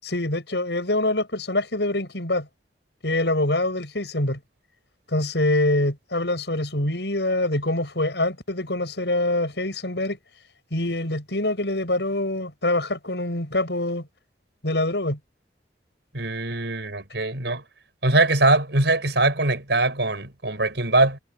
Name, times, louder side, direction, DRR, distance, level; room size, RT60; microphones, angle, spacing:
voice 1, 0.0-2.5 3.0-4.4 5.1-10.2 10.7-14.1 14.6-15.2, left 1 dB, 75° left, 7.5 m, -25 dB
voice 2, 16.1-17.6 18.0-21.2, right 2 dB, 75° right, 5.6 m, -22 dB
head